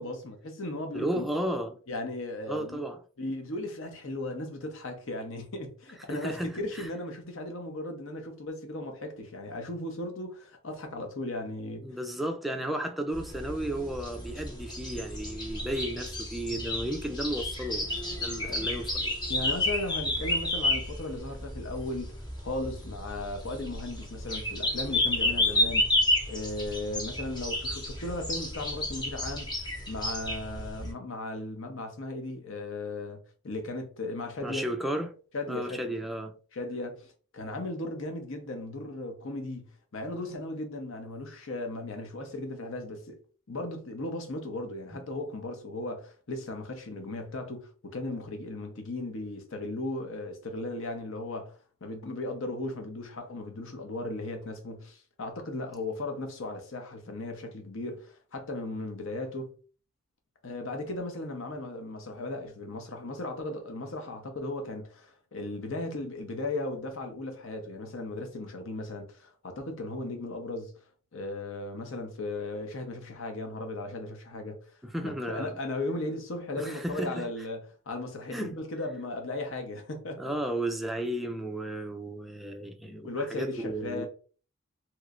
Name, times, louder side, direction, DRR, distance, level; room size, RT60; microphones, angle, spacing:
voice 1, 0.0-1.3 1.9-2.8 3.2-11.9 18.3-18.6 19.3-22.1 22.4-25.9 26.3-29.6 29.9-34.7 35.3-35.9 36.5-39.7 39.9-43.2 43.5-59.5 60.4-70.7 71.1-74.6 75.0-80.3 83.0-84.1, left 2 dB, 65° left, 0.8 m, -36 dB
voice 2, 0.9-1.8 2.5-3.0 6.1-6.9 11.8-17.9 18.2-19.2 34.4-35.1 35.5-36.4 44.9-45.0 74.8-75.6 76.6-77.3 78.3-78.6 80.2-84.1, right 1 dB, ahead, 0.3 m, -34 dB
sound 1, 13.1-30.9, left 1 dB, 20° left, 0.8 m, -31 dB
3.1 x 2.9 x 2.5 m
head